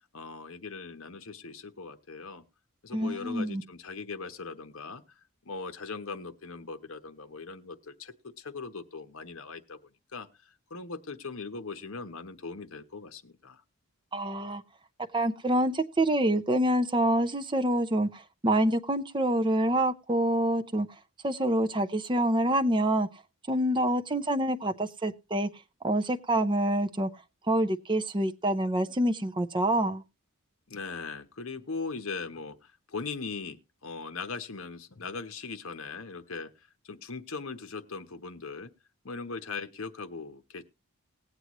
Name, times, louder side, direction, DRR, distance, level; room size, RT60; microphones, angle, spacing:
voice 1, 0.1-2.4 2.8-5.0 5.4-9.8 10.1-10.3 10.7-13.6 30.7-36.5 36.8-38.7 39.0-40.6, left 4 dB, 60° left, 0.9 m, -39 dB
voice 2, 2.9-3.6 14.1-14.6 15.1-20.9 21.2-23.1 23.5-25.5 25.8-27.1 27.5-30.0, right 1 dB, 20° right, 0.6 m, -26 dB
19.5 x 7.9 x 3.0 m
head